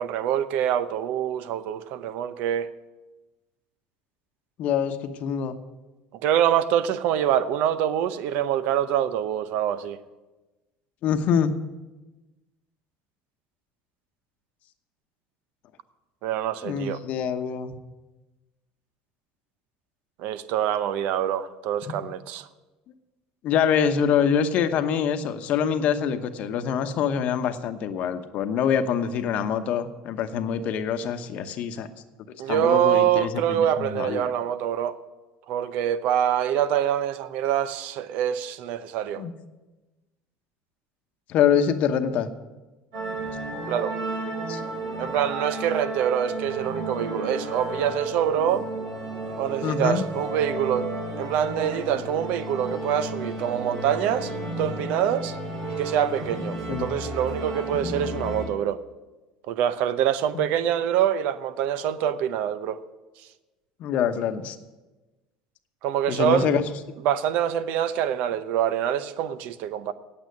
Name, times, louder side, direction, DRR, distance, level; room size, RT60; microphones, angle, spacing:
voice 1, 0.0-2.7 6.1-10.0 16.2-17.0 20.2-22.5 32.4-35.0 35.5-39.2 43.7-43.9 45.0-48.7 49.4-50.9 51.2-54.3 54.6-55.4 55.7-58.8 59.5-62.8 65.8-66.5 67.0-69.9, right 10 dB, 70° right, 0.7 m, -25 dB
voice 2, 4.6-5.6 11.0-11.5 16.6-17.8 23.4-31.9 32.5-34.3 39.2-39.3 41.3-42.3 44.5-44.6 49.6-50.0 56.7-56.9 60.3-60.4 63.8-64.6 66.1-67.0, left 7 dB, 60° left, 1.0 m, -25 dB
sound 1, 42.9-58.4, right 2 dB, 90° right, 4.2 m, -32 dB
8.9 x 8.6 x 9.3 m
supercardioid pair, 100°, 3 cm